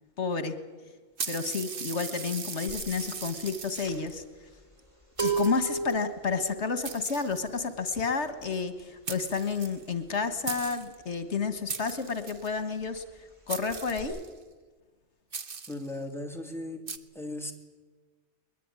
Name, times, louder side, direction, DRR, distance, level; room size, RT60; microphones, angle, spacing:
voice 1, 0.2-0.6 1.3-4.2 5.2-13.0 13.5-14.2, left 5 dB, 80° left, 9 dB, 1.8 m, -30 dB
sound 1, 1.2-4.1 4.8-4.9 5.2-5.9 6.8-7.8 8.8-8.9 9.1-10.2 10.5-10.9 11.7-12.6 13.5-14.4 15.3-15.9 16.9-17.0, right 5 dB, 55° right, 1.3 m, -39 dB
sound 2, 2.7-3.0 3.2-11.8 12.1-12.3 12.5-13.4 13.7-14.0, right 4 dB, 25° right, 5.4 m, -36 dB
voice 2, 15.7-16.9 17.1-17.5, left 1 dB, ahead, 3 dB, 2.7 m, -37 dB
21.5 x 21.0 x 9.7 m, 1.4 s
omnidirectional pair, 1.2 m